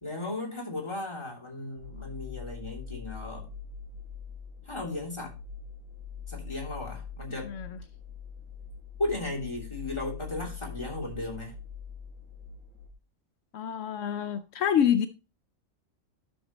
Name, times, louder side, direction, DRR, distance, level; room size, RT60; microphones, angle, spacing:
voice 1, 0.0-3.5 4.7-5.3 6.3-7.6 9.0-11.5, left 2 dB, 20° left, 2.8 m, -35 dB
sound 1, 1.8-12.9, left 5 dB, 90° right, 2.1 m, -43 dB
voice 2, 7.4-7.8 13.5-15.1, left 9 dB, 75° left, 0.9 m, -27 dB
12.0 x 6.4 x 3.0 m
omnidirectional pair, 1.3 m